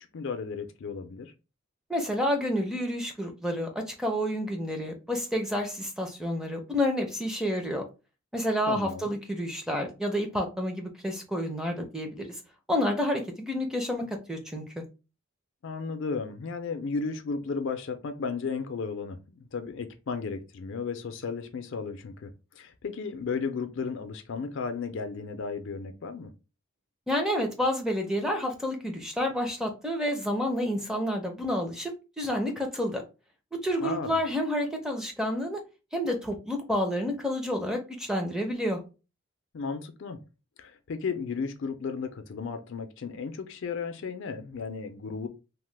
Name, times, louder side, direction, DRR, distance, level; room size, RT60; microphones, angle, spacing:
voice 1, 0.1-1.3 8.7-9.1 15.6-22.3 22.6-26.3 33.8-34.2 39.5-40.2 40.6-45.3, left 5 dB, 60° left, 0.4 m, -34 dB
voice 2, 1.9-7.8 8.3-12.3 12.7-14.8 27.1-33.0 33.5-35.6 35.9-38.8, equal, 5° right, 0.5 m, -29 dB
2.9 x 2.1 x 3.2 m
head